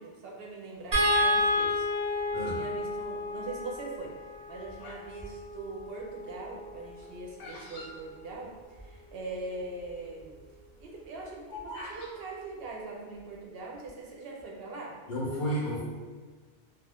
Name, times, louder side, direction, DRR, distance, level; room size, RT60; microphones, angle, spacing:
voice 1, 0.0-4.1 4.5-10.4 10.8-15.0, right 3 dB, 65° right, -2 dB, 0.7 m, -42 dB
Bird vocalization bird call bird song, 0.9-2.4 3.0-3.5 4.2-5.1 5.4-8.9 9.2-9.3 9.4-9.8 10.2-12.1, left 1 dB, 80° left, 0.9 m, -44 dB
sound 1, 0.9-7.2 8.8-8.9 9.3-9.4, left 1 dB, 30° right, 0.7 m, -31 dB
voice 2, 15.1-15.8, equal, 50° left, -8 dB, 0.7 m, -31 dB
2.3 x 2.3 x 3.4 m, 1.5 s
omnidirectional pair, 1.2 m